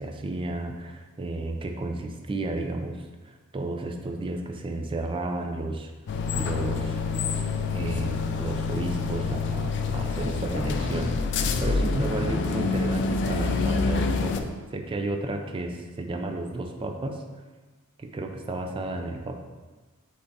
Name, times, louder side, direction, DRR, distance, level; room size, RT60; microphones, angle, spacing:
voice 1, 0.0-3.1 3.5-5.9 6.3-7.0 7.7-17.2 18.0-19.4, right 2 dB, 25° right, 4 dB, 0.3 m, -32 dB
sound 1, 6.1-14.4, left 4 dB, 50° left, 0.3 m, -27 dB
4.0 x 3.4 x 3.9 m, 1.3 s
head